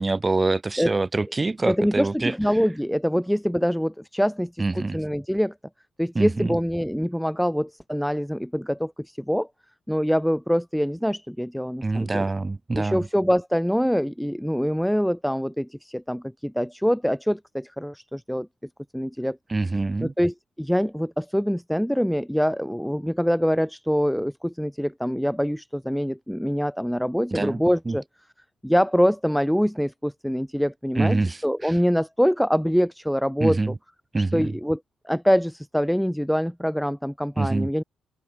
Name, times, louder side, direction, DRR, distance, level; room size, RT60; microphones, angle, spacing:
voice 1, 0.0-2.3 4.6-5.0 6.1-6.6 11.8-13.1 19.5-20.1 27.3-28.0 31.0-31.7 33.4-33.7 34.1-34.5 37.4-37.7, right 3 dB, 30° right, 1.7 m, -25 dB
voice 2, 1.7-5.5 6.0-9.5 9.9-12.3 12.7-18.5 18.9-19.4 20.0-28.0 28.6-33.7 34.2-34.8 35.0-37.8, equal, ahead, 0.4 m, -24 dB
open air
hypercardioid pair, 50°, 0 cm